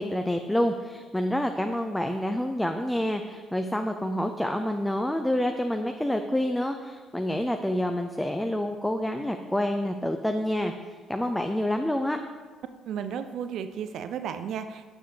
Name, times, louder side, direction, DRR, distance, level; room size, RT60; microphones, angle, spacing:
voice 1, 0.0-12.2, left 1 dB, 5° left, 5 dB, 0.4 m, -28 dB
voice 2, 12.8-14.9, right 8 dB, 60° right, 10 dB, 0.3 m, -34 dB
7.3 x 6.8 x 2.8 m, 1.5 s
figure-of-eight pair, 45°, 0 cm